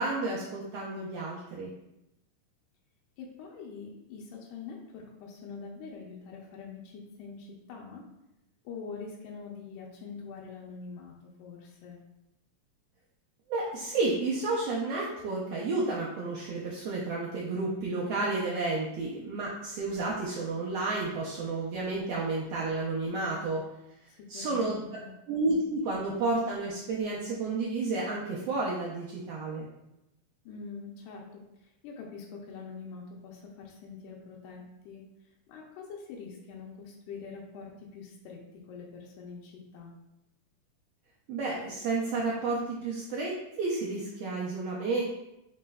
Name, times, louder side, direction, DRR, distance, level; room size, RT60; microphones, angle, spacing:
voice 1, 0.0-1.7 13.5-23.6 24.3-24.9 25.3-29.7 41.3-45.0, right 3 dB, 85° right, -4 dB, 1.4 m, -31 dB
voice 2, 3.2-8.0 8.6-12.0 24.1-25.1 30.5-39.9, left 5 dB, 90° left, -1 dB, 2.2 m, -44 dB
5.4 x 4.1 x 2.2 m, 0.89 s
omnidirectional pair, 3.6 m